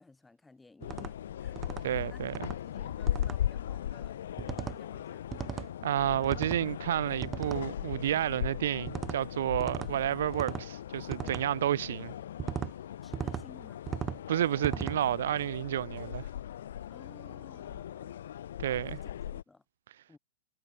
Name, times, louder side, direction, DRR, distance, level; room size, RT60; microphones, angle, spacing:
voice 1, 0.0-5.3 13.0-13.8 16.9-18.2 18.6-19.6 20.1-20.2, left 3 dB, 10° left, 4.1 m, -57 dB
sound 1, 0.8-19.4, left 10 dB, 75° left, 1.1 m, -38 dB
sound 2, 0.8-1.1 1.6-1.8 2.3-2.6 3.1-3.4 4.4-4.8 5.3-5.7 6.2-6.6 7.2-7.6 8.9-9.2 9.6-9.9 10.3-10.7 11.1-11.4 12.4-12.7 13.1-13.4 13.9-14.2 14.6-15.0, right 8 dB, 20° right, 0.9 m, -37 dB
voice 2, 1.8-2.3 5.8-12.1 14.3-16.3 18.6-19.0, right 11 dB, 75° right, 0.4 m, -30 dB
hypercardioid pair, 135°, 0 cm